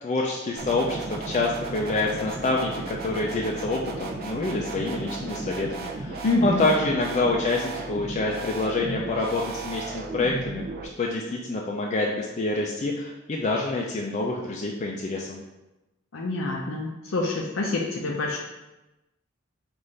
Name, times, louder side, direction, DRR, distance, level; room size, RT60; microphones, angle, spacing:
voice 1, 0.0-10.7 11.0-15.4, left 2 dB, 35° left, -1 dB, 0.4 m, -27 dB
sound 1, 0.6-10.9, right 3 dB, 50° right, 0.5 m, -35 dB
voice 2, 6.2-6.6 16.1-18.4, left 2 dB, 85° left, -1 dB, 0.6 m, -26 dB
5.4 x 2.5 x 3.2 m, 1.0 s
head